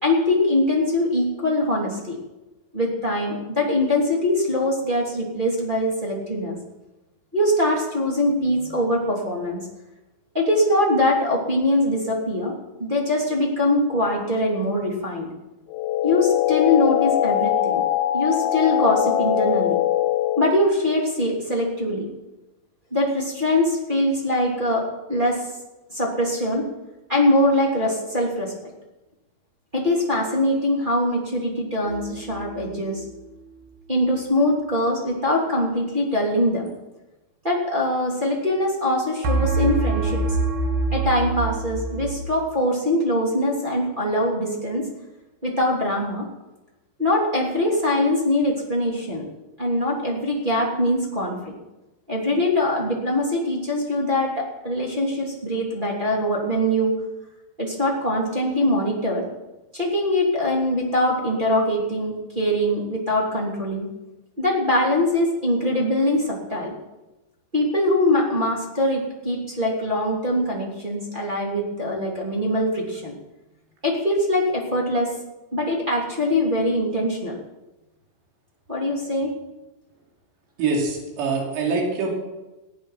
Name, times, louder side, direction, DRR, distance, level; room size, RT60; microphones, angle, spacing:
voice 1, 0.0-2.2 2.7-6.6 7.3-9.6 10.3-15.3 16.0-17.8 18.1-19.8 20.4-22.1 22.9-25.4 25.9-26.7 27.1-28.7 29.7-33.0 33.9-36.7 37.4-40.2 40.9-44.9 45.4-46.3 47.0-49.3 49.6-51.5 52.1-57.0 57.6-59.3 59.7-63.9 64.4-66.8 67.5-73.1 73.8-75.1 75.5-77.4 78.7-79.4, left 1 dB, 15° right, -5 dB, 2.4 m, -22 dB
sound 1, 15.7-20.6, left 12 dB, 80° left, 2.4 m, -22 dB
sound 2, 31.9-32.8 39.2-42.3, right 3 dB, 50° right, 2.9 m, -25 dB
voice 2, 80.6-82.2, right 4 dB, 75° right, -1 dB, 5.0 m, -24 dB
20.5 x 9.0 x 5.9 m, 1.0 s
omnidirectional pair, 5.2 m